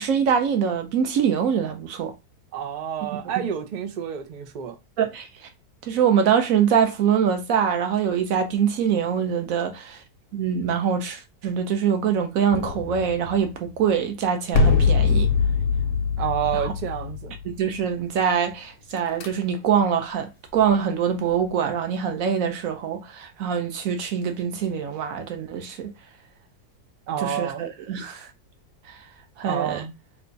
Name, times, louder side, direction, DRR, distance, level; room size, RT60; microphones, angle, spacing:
voice 1, 0.0-2.1 3.4-3.5 5.0-5.3 5.8-10.0 10.3-15.3 16.5-16.7 17.4-25.9 27.2-28.3 28.9-29.0 29.4-29.8, right 7 dB, 65° right, 1.0 m, -24 dB
voice 2, 2.5-4.8 16.2-17.4 27.1-27.7 29.5-29.9, right 9 dB, 85° right, 0.4 m, -29 dB
sound 1, 12.5-13.8 14.5-17.9 19.0-19.3, left 5 dB, 65° left, 0.9 m, -23 dB
3.3 x 2.3 x 3.9 m
omnidirectional pair, 1.7 m